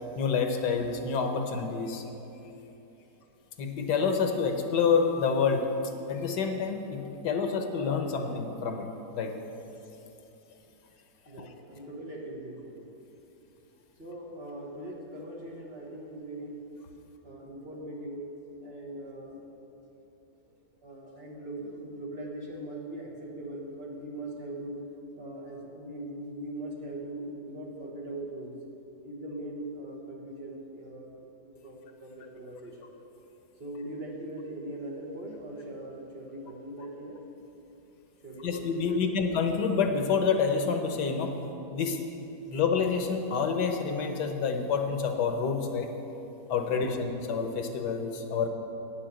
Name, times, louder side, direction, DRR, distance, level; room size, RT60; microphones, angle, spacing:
voice 1, 0.2-2.0 3.6-5.7 6.1-8.9 9.1-9.3 11.4-11.5 38.4-41.3 41.7-42.0 42.5-45.9 46.5-48.5, left 5 dB, 85° left, 5 dB, 1.5 m, -28 dB
voice 2, 11.3-12.9 14.0-16.6 17.2-18.3 18.6-19.4 20.5-20.6 20.8-24.8 25.2-28.6 29.0-32.9 33.6-37.2 38.2-39.2 46.7-47.0, right 1 dB, 40° right, -3 dB, 1.6 m, -41 dB
9.4 x 6.8 x 7.5 m, 3.0 s
omnidirectional pair, 1.7 m